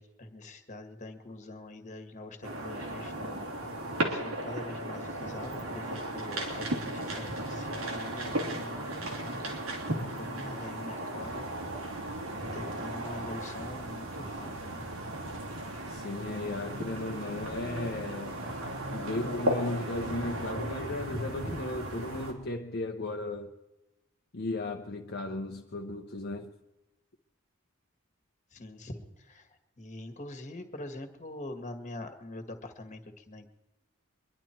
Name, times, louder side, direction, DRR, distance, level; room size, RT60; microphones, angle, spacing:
voice 1, 0.0-3.5 3.8-8.8 9.4-9.5 9.8-11.5 12.3-14.9 28.5-33.5, left 1 dB, 35° left, 1.8 m, -44 dB
sound 1, 2.4-22.3, right 1 dB, 80° right, 3.1 m, -36 dB
sound 2, 5.5-5.6 7.0-7.3 8.0-8.1 8.2-9.7 10.0-10.8 11.7-11.8, equal, 15° right, 1.9 m, -47 dB
sound 3, 11.2-20.5, right 3 dB, 60° right, 1.0 m, -47 dB
voice 2, 15.9-18.5 18.9-23.5 24.3-26.5, left 2 dB, 50° left, 0.9 m, -35 dB
24.0 x 11.5 x 4.5 m
head